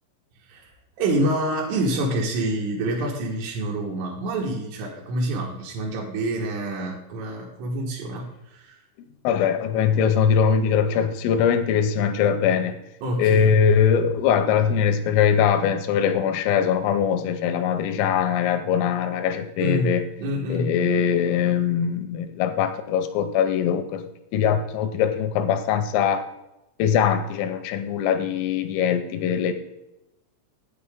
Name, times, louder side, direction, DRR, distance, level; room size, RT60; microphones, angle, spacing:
voice 1, 0.4-8.8 13.0-13.5 19.6-20.7, right 1 dB, 75° right, -5 dB, 3.9 m, -27 dB
voice 2, 9.2-12.8 13.2-20.0 20.5-26.3 26.8-29.5, left 7 dB, 90° left, 8 dB, 3.4 m, -22 dB
9.7 x 9.4 x 3.6 m, 0.91 s
omnidirectional pair, 5.9 m